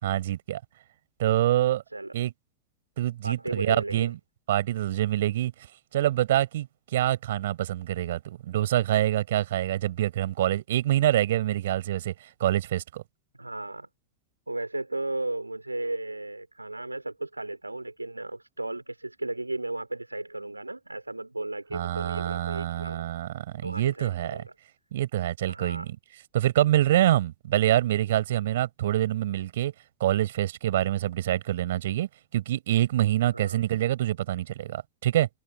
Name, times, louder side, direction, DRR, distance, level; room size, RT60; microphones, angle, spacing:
voice 1, 0.0-0.6 1.2-1.8 2.1-2.3 3.0-4.1 4.5-5.5 5.9-12.1 12.4-13.0 21.7-24.4 24.9-26.0 26.3-29.7 30.0-35.3, right 13 dB, 60° right, 4.7 m, -26 dB
voice 2, 1.9-2.2 3.2-4.1 13.4-13.9 14.5-23.0 23.6-24.5 25.5-25.9 33.3-33.6, right 2 dB, 85° right, 3.0 m, -35 dB
figure-of-eight pair, 90°, 0 cm